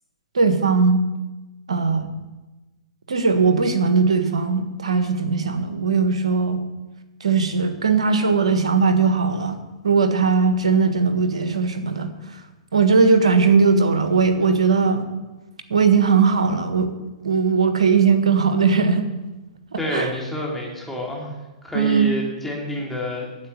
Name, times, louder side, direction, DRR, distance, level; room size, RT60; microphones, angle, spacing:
voice 1, 0.3-1.0 1.7-2.1 3.1-6.6 7.2-9.6 9.8-12.1 12.7-15.1 15.7-16.9 17.2-19.1 19.7-20.1 21.7-22.1, right 5 dB, 85° right, 8 dB, 1.5 m, -19 dB
voice 2, 19.8-21.3 21.6-23.3, left 1 dB, 5° left, -2 dB, 3.0 m, -28 dB
9.3 x 8.0 x 8.2 m, 1.1 s
hypercardioid pair, 120°, 3 cm